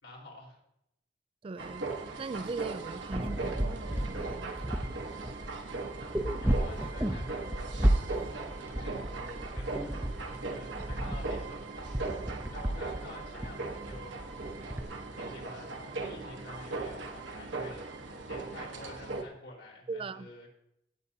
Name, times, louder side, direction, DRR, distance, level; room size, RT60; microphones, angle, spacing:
voice 1, 0.0-0.6 6.4-7.9 8.6-14.2 15.1-20.5, left 2 dB, 85° left, 4.4 m, -50 dB
voice 2, 1.4-1.9 2.2-3.6 4.1-4.8 19.9-20.3, right 4 dB, 30° right, 0.3 m, -39 dB
sound 1, 1.6-19.2, right 3 dB, 80° right, 1.2 m, -39 dB
sound 2, 3.1-14.8, right 1 dB, 10° right, 0.7 m, -33 dB
17.5 x 8.2 x 2.8 m
head